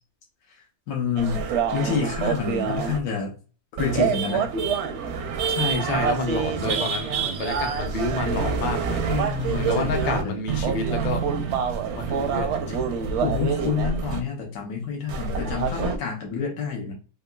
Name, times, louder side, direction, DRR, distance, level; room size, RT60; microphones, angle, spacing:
voice 1, 0.9-3.4 3.8-4.5 9.1-10.4 13.2-16.9, left 5 dB, 75° left, 1.3 m, -28 dB
sound 1, 1.2-3.0 3.8-10.2 10.5-14.2 15.1-16.0, right 6 dB, 65° right, 0.7 m, -26 dB
voice 2, 5.5-9.1 9.5-11.3 11.9-12.8, left 3 dB, 50° left, 0.6 m, -29 dB
3.7 x 2.8 x 2.2 m
omnidirectional pair, 1.6 m